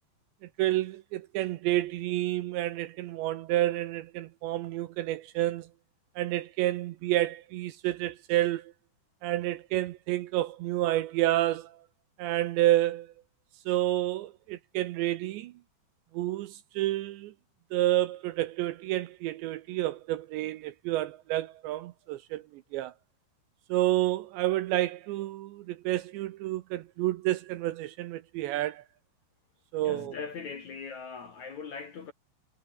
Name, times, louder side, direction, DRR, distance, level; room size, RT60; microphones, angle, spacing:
voice 1, 0.6-5.7 6.2-8.7 9.2-11.8 12.2-13.1 13.7-15.5 16.1-17.3 17.7-22.9 23.7-28.8 29.7-30.2, right 15 dB, 80° right, 2.8 m, -29 dB
voice 2, 29.8-32.1, left 5 dB, 50° left, 2.5 m, -40 dB
omnidirectional pair, 5.8 m